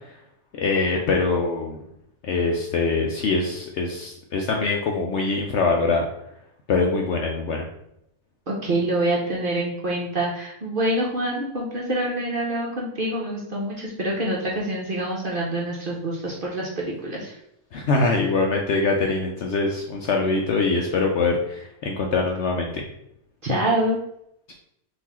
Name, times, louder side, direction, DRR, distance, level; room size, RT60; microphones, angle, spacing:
voice 1, 0.5-1.8 2.2-6.1 6.7-7.7 17.7-22.8 24.5-24.6, left 3 dB, 65° left, 1 dB, 0.7 m, -23 dB
voice 2, 8.5-17.4 23.4-24.0, right 1 dB, 50° right, -3 dB, 0.7 m, -26 dB
3.9 x 2.6 x 4.1 m, 0.78 s
omnidirectional pair, 1.6 m